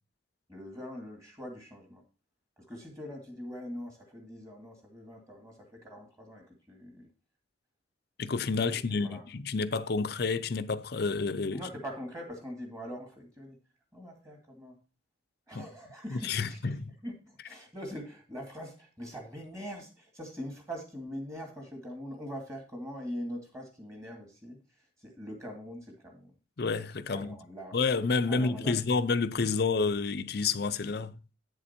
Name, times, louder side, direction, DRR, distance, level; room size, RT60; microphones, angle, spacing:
voice 1, 0.5-2.0 2.7-7.1 8.9-9.2 11.5-13.6 13.9-14.8 15.5-16.8 17.0-24.6 25.0-26.3 27.1-27.8 28.3-28.7, equal, 15° right, 2.2 m, -42 dB
voice 2, 8.2-11.6 15.5-15.7 16.1-16.9 26.6-27.4 27.7-31.1, left 4 dB, 55° left, 0.6 m, -29 dB
8.3 x 7.1 x 4.3 m
head